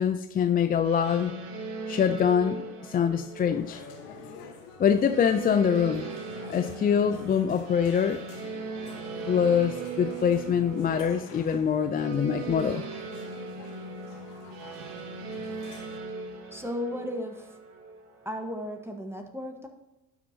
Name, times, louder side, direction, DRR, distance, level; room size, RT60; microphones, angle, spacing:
voice 1, 0.0-1.4 1.9-3.8 4.8-6.1 6.5-8.2 9.3-12.8, left 7 dB, 20° left, 0.4 m, -24 dB
sound 1, 0.8-18.9, right 4 dB, 70° right, 1.8 m, -39 dB
sound 2, 3.5-16.0, left 6 dB, 80° left, 1.4 m, -48 dB
voice 2, 16.5-17.6 18.2-19.7, left 1 dB, 5° right, 1.2 m, -35 dB
12.0 x 8.6 x 2.8 m
hypercardioid pair, 80°, 45 cm